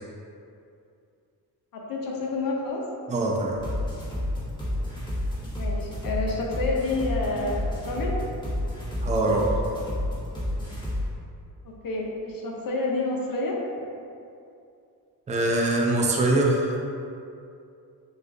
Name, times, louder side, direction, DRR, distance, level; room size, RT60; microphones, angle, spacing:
voice 1, 1.7-2.8 5.6-8.1 11.8-13.6, left 3 dB, 60° left, -1 dB, 0.7 m, -29 dB
voice 2, 3.1-3.6 9.0-9.5 15.3-16.7, right 2 dB, 20° right, -2 dB, 0.5 m, -23 dB
sound 1, 3.5-11.1, left 1 dB, 10° left, 1.0 m, -30 dB
6.3 x 2.3 x 2.5 m, 2.5 s
cardioid pair, 115°, 39 cm